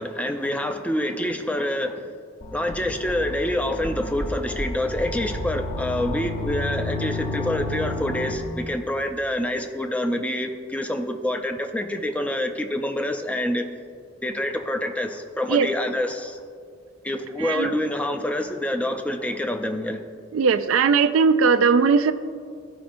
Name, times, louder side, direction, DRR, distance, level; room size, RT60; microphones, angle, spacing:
voice 1, 0.0-2.1 2.5-13.7 14.2-16.4 17.0-20.0, left 1 dB, 5° left, 6 dB, 0.4 m, -27 dB
sound 1, 2.4-8.7, left 1 dB, 30° left, 0.8 m, -31 dB
voice 2, 17.4-17.8 20.3-22.1, right 5 dB, 85° right, 10 dB, 0.3 m, -19 dB
14.5 x 5.1 x 2.6 m, 2.2 s
head